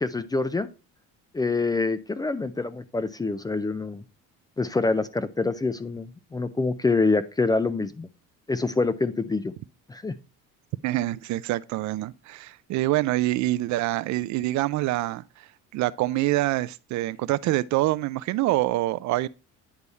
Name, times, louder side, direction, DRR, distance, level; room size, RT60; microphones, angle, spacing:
voice 1, 0.0-0.7 1.3-4.0 4.6-8.1 8.5-9.5 9.9-10.1, left 3 dB, 15° left, 0.4 m, -26 dB
voice 2, 10.8-19.3, right 17 dB, 65° right, 0.4 m, -26 dB
9.8 x 3.5 x 4.0 m
cardioid pair, 125°, 31 cm